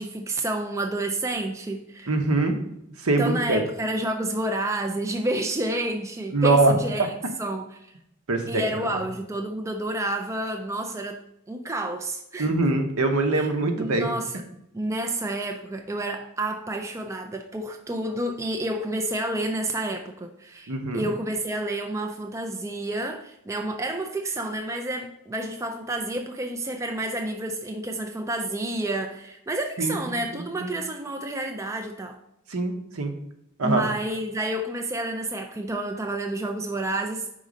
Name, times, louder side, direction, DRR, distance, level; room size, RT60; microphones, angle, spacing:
voice 1, 0.0-2.1 3.2-7.9 8.5-11.2 11.5-12.5 13.4-13.5 13.8-14.4 14.7-32.2 33.6-37.3, right 1 dB, 15° right, 5 dB, 0.3 m, -29 dB
voice 2, 2.1-2.6 3.0-3.6 6.3-7.1 8.3-8.8 12.4-14.1 20.7-21.1 29.8-30.0 30.3-30.7 32.5-33.1 33.6-33.8, right 2 dB, 70° right, 5 dB, 0.8 m, -23 dB
5.1 x 3.8 x 5.1 m, 0.82 s
head